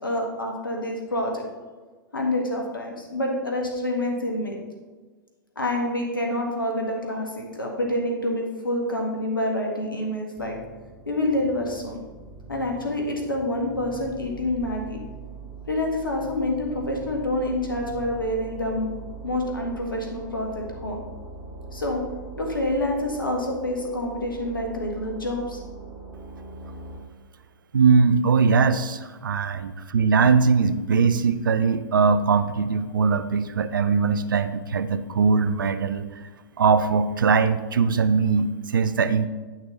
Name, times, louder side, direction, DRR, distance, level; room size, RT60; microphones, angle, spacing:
voice 1, 0.0-1.4 2.1-4.6 5.5-10.6 11.0-12.0 12.5-15.0 15.7-18.9 19.2-21.0 21.7-22.0 22.4-25.6, left 1 dB, 85° left, 1 dB, 1.8 m, -27 dB
sound 1, 10.4-27.0, right 4 dB, 5° right, 2.4 m, -41 dB
voice 2, 27.7-36.1 36.6-39.3, right 5 dB, 75° right, 12 dB, 0.6 m, -21 dB
9.4 x 6.0 x 4.1 m, 1.3 s
figure-of-eight pair, 100°, 11 cm